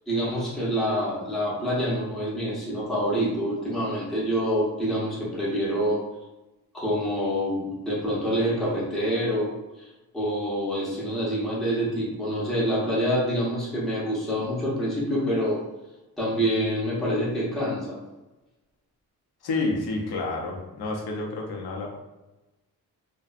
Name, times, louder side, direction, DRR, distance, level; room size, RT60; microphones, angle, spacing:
voice 1, 0.1-6.0 6.7-15.6 16.2-18.0, equal, ahead, -7 dB, 0.7 m, -26 dB
voice 2, 19.4-21.9, left 3 dB, 75° left, 0 dB, 0.6 m, -29 dB
2.6 x 2.1 x 2.4 m, 1.0 s
wide cardioid pair, 115°, 39 cm